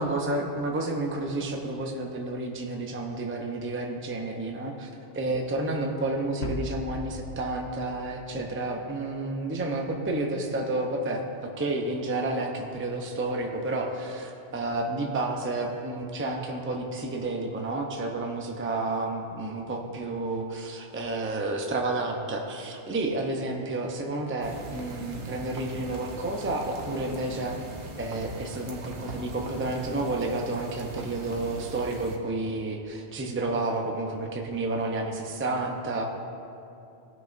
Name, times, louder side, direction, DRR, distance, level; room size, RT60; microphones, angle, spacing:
voice 1, 0.0-27.6 28.0-36.0, right 2 dB, 15° right, 1 dB, 0.5 m, -30 dB
sound 1, 6.4-8.9, left 2 dB, 70° left, 1.0 m, -38 dB
sound 2, 24.4-32.2, right 2 dB, 85° right, 1.3 m, -40 dB
16.5 x 6.2 x 2.6 m, 2.7 s
omnidirectional pair, 1.1 m